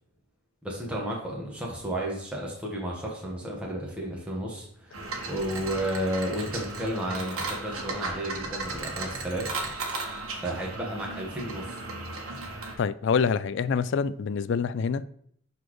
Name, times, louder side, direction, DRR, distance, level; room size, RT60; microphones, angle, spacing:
voice 1, 0.6-9.6 10.4-11.8, right 1 dB, 5° right, 1.3 m, -32 dB
sound 1, 4.9-12.8, right 3 dB, 75° right, 1.5 m, -35 dB
voice 2, 12.8-15.0, left 6 dB, 55° left, 0.3 m, -26 dB
11.5 x 4.2 x 3.1 m
head